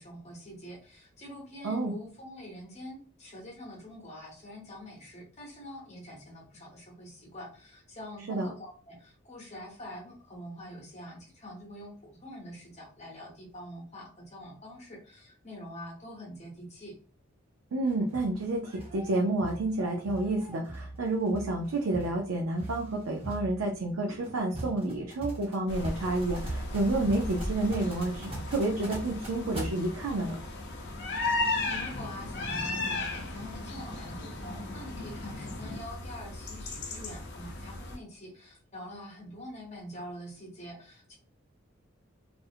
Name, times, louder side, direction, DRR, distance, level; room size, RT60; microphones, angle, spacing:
voice 1, 0.0-16.9 31.2-41.2, equal, 35° left, -1 dB, 1.0 m, -45 dB
voice 2, 17.7-30.4, right 2 dB, 85° right, 1 dB, 0.5 m, -30 dB
sound 1, 17.8-29.7, right 1 dB, 30° right, 1.0 m, -42 dB
sound 2, 25.7-38.0, left 2 dB, 55° left, 0.6 m, -36 dB
2.5 x 2.0 x 2.6 m, 0.41 s
head